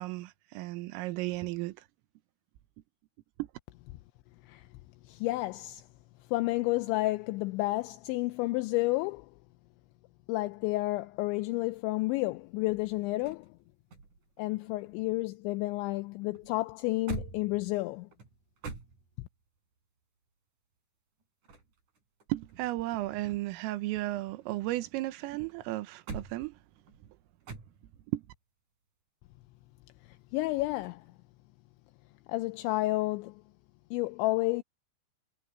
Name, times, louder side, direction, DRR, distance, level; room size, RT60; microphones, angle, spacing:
voice 1, 0.0-1.8 3.4-3.5 22.3-26.6 28.1-28.2, right 17 dB, 85° right, 3.7 m, -34 dB
voice 2, 5.1-5.9 6.3-9.3 10.3-13.5 14.4-18.1 30.3-31.0 32.3-33.4 33.9-34.6, left 20 dB, 85° left, 2.7 m, -31 dB
sound 1, 12.4-15.6 15.8-19.5 21.2-23.0 23.3-25.0 25.5-28.1 30.7-31.1, right 4 dB, 40° right, 6.2 m, -47 dB
omnidirectional pair, 5.8 m